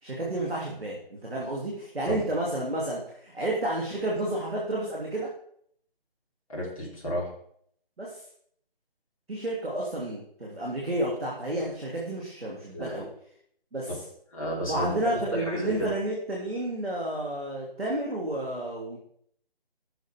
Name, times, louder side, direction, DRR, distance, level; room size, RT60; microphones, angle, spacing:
voice 1, 0.0-5.3 8.0-8.2 9.3-13.1 13.7-14.0 14.7-19.0, right 1 dB, ahead, -24 dB, 0.8 m, -31 dB
voice 2, 6.5-7.3 12.7-13.0 13.9-14.0 14.3-15.9, equal, 35° left, -4 dB, 3.2 m, -32 dB
16.0 x 6.3 x 3.6 m, 0.66 s
figure-of-eight pair, 170°, 30 cm